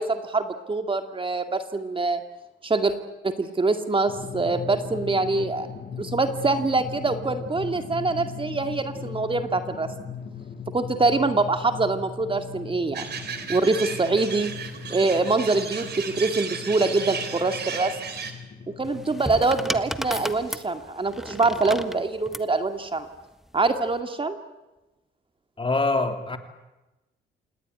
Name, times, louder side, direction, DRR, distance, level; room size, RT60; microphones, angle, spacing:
voice 1, 0.0-2.2 2.6-2.9 3.2-5.7 6.0-9.9 10.7-13.1 13.5-14.5 14.9-18.0 18.7-23.1 23.5-24.4, right 3 dB, 25° right, 8 dB, 2.2 m, -24 dB
Drum, 4.1-20.3, left 6 dB, 50° left, 3.4 m, -39 dB
sound 1, 12.9-18.3, right 6 dB, 55° right, 3.9 m, -34 dB
sound 2, 18.8-22.5 23.6-23.9, equal, ahead, 1.5 m, -34 dB
voice 2, 25.6-26.4, left 3 dB, 25° left, 7 dB, 3.2 m, -24 dB
28.5 x 18.0 x 9.6 m, 1.0 s
cardioid pair, 90°, 20 cm